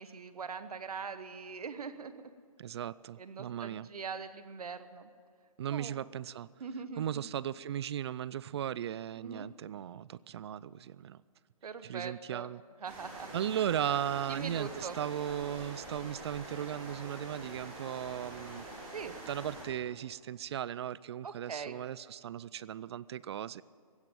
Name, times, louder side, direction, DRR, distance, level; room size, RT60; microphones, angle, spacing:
voice 1, 0.0-2.3 3.2-5.1 5.7-5.9 6.6-7.0 9.2-9.5 11.6-12.5 12.8-13.4 14.3-15.0 18.9-19.2 21.2-21.8, right 5 dB, 80° right, 11 dB, 1.2 m, -42 dB
voice 2, 2.6-3.9 5.6-6.5 7.0-11.2 11.8-12.6 13.3-18.7 19.3-23.6, right 10 dB, 45° right, 21 dB, 0.4 m, -37 dB
sound 1, 12.8-19.6, right 2 dB, 25° right, 5.1 m, -46 dB
16.0 x 9.9 x 9.0 m, 2.1 s
hypercardioid pair, 150°, 19 cm